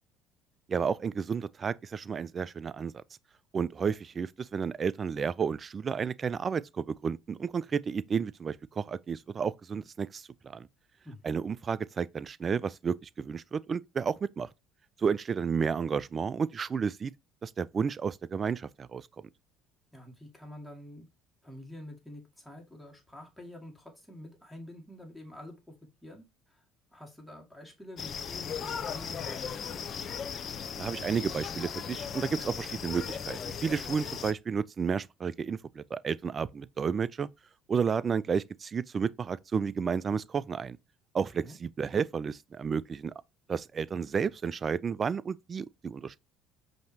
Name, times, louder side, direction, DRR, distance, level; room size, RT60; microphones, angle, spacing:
voice 1, 0.7-3.0 3.5-10.7 11.2-14.5 15.0-17.1 17.4-19.1 30.8-37.3 37.7-40.8 41.1-43.1 43.5-46.1, right 6 dB, 35° right, 0.3 m, -32 dB
voice 2, 19.9-21.1 21.4-25.6 26.0-26.6 26.9-29.7 41.4-41.6, left 1 dB, 5° left, 1.9 m, -47 dB
sound 1, 28.0-34.3, left 7 dB, 45° left, 0.7 m, -37 dB
5.2 x 2.9 x 2.8 m
supercardioid pair, 80°, 0 cm